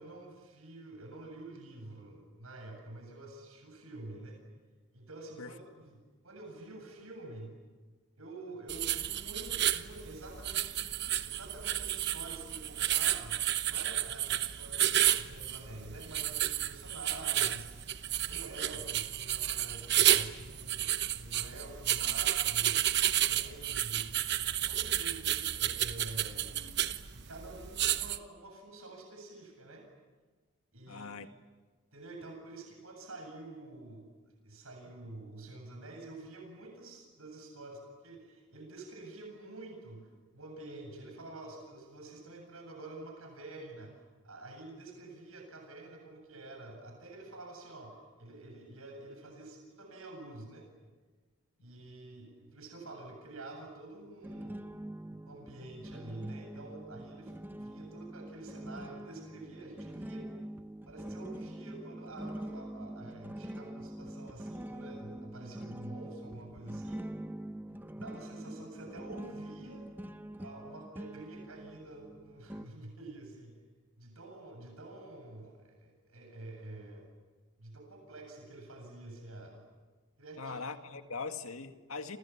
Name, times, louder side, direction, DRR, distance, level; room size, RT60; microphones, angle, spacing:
voice 1, 0.0-4.4 4.9-7.6 8.2-10.9 11.2-17.7 18.1-26.5 27.1-29.9 30.7-31.3 31.9-34.1 34.4-50.7 51.6-60.3 60.9-67.0 67.9-69.9 70.4-73.6 74.0-77.1 77.6-79.6 80.2-80.6, right 2 dB, 80° right, 3 dB, 7.8 m, -48 dB
sound 1, 8.7-28.2, right 12 dB, 50° right, 1.1 m, -31 dB
voice 2, 30.9-31.3 80.4-82.2, left 4 dB, 85° left, 7 dB, 2.1 m, -41 dB
sound 2, 54.2-72.6, right 1 dB, 10° right, 0.8 m, -44 dB
29.5 x 28.0 x 7.3 m, 1.4 s
head